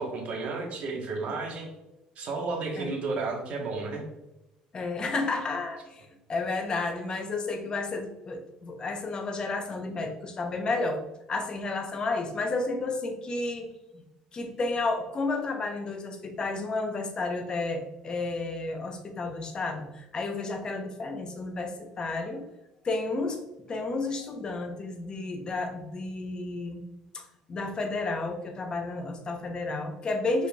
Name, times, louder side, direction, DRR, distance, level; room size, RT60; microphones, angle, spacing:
voice 1, 0.0-1.7 2.1-4.1, right 3 dB, 55° right, 1 dB, 1.3 m, -32 dB
voice 2, 4.7-11.0 11.3-14.0 14.3-22.4 22.8-23.4 23.7-26.8 27.1-30.5, left 3 dB, 35° left, 4 dB, 0.9 m, -32 dB
5.1 x 4.1 x 2.4 m, 0.93 s
cardioid pair, 115°, 3 cm